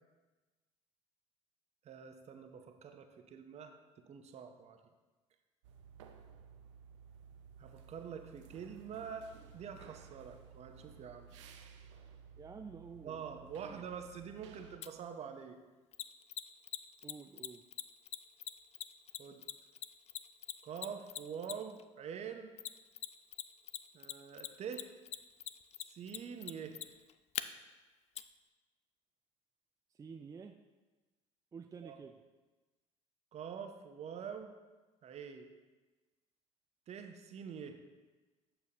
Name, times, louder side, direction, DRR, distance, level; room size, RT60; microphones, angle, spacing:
voice 1, 1.8-4.8 7.6-11.3 13.0-15.6 19.2-19.4 20.6-22.5 23.9-24.9 25.9-26.8 31.8-32.0 33.3-34.5 35.0-35.5 36.9-37.8, right 7 dB, 45° right, 6 dB, 0.8 m, -46 dB
sound 1, 5.6-14.8, right 7 dB, 75° right, 0.6 m, -56 dB
voice 2, 12.4-13.8 17.0-17.6 29.9-30.6 31.5-32.2, right 5 dB, 20° right, 5 dB, 0.4 m, -50 dB
Mechanisms, 14.8-14.9 15.9-21.8 22.6-23.4 23.7-27.4 28.2-28.3, left 12 dB, 45° left, 0.4 m, -41 dB
8.6 x 6.8 x 2.9 m, 1.2 s
hypercardioid pair, 60°, 16 cm